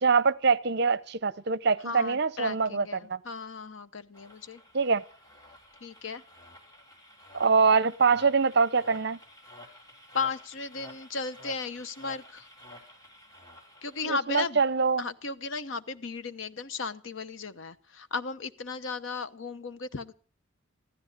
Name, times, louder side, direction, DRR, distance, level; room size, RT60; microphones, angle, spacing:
voice 1, 0.0-3.2 4.7-5.0 7.3-9.2 14.0-15.0, right 5 dB, 55° right, 0.7 m, -24 dB
voice 2, 1.8-4.6 5.8-6.2 10.1-12.5 13.8-14.6 15.0-20.1, left 4 dB, 70° left, 0.9 m, -35 dB
sound 1, 4.1-14.2, left 1 dB, 20° left, 3.3 m, -52 dB
15.0 x 13.0 x 6.6 m
head